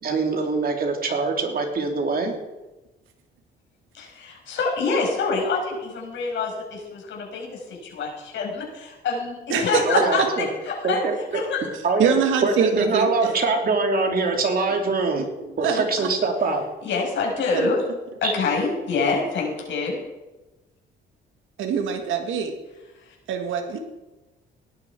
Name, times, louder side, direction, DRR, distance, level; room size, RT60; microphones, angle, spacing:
voice 1, 0.0-2.4 9.8-10.5 10.8-11.4 11.8-12.1 12.4-15.3 15.6-16.6 18.2-18.3, right 3 dB, 50° right, 3 dB, 3.1 m, -23 dB
voice 2, 3.9-11.0 11.3-11.7 16.8-17.8 18.2-20.0 23.1-23.2, left 4 dB, 70° left, -1 dB, 5.8 m, -26 dB
voice 3, 9.5-9.8 12.0-13.3 15.4-16.1 17.5-17.7 21.6-22.5 23.3-23.8, right 6 dB, 80° right, 4 dB, 2.0 m, -24 dB
18.0 x 11.0 x 4.7 m, 1.1 s
cardioid pair, 90°, 20 cm